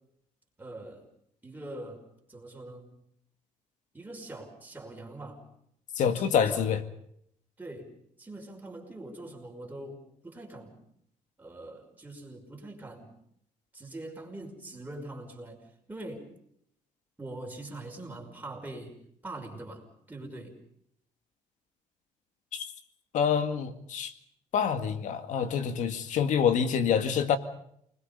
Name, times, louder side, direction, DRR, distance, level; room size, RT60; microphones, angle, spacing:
voice 1, 0.6-1.1 1.4-2.9 3.9-5.4 6.1-6.7 7.6-10.8 11.4-13.1 13.7-16.3 17.2-19.0 19.2-19.8 20.1-20.6, right 2 dB, 15° right, 5.6 m, -43 dB
voice 2, 6.0-6.8 22.5-22.7 23.1-24.1 24.5-27.4, left 7 dB, 65° left, 2.0 m, -26 dB
29.0 x 21.0 x 5.4 m
cardioid pair, 100°, 13 cm